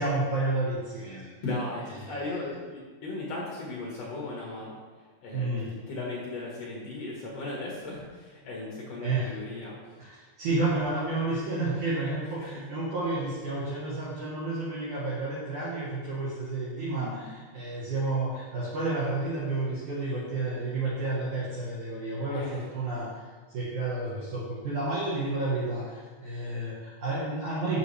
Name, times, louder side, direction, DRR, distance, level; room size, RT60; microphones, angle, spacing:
voice 1, 0.0-1.3 1.9-2.4 5.3-5.7 9.0-9.3 10.0-23.2 23.5-27.8, right 2 dB, 65° right, -7 dB, 2.0 m, -31 dB
voice 2, 1.4-4.8 5.2-5.5 5.9-9.8 12.4-12.5 16.8-17.2 20.1-20.3 22.3-22.7, left 2 dB, 75° left, -4 dB, 1.4 m, -36 dB
13.5 x 6.4 x 3.4 m, 1.4 s
omnidirectional pair, 5.5 m